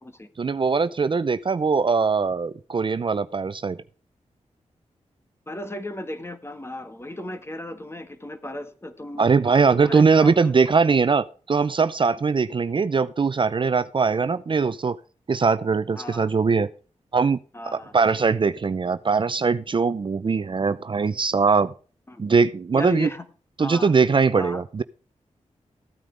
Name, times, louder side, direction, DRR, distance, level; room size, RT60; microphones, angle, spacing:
voice 1, 0.4-3.8 9.2-15.0 15.3-16.7 17.1-17.4 17.7-21.7 22.2-23.1 23.6-24.8, right 5 dB, 40° right, 13 dB, 0.6 m, -21 dB
voice 2, 5.5-9.3 9.6-10.5 15.9-16.3 17.5-17.9 22.1-22.2 22.7-23.3 23.6-23.9 24.3-24.6, left 1 dB, 20° left, 10 dB, 1.5 m, -35 dB
15.0 x 9.1 x 3.4 m, 0.38 s
wide cardioid pair, 85°, 12 cm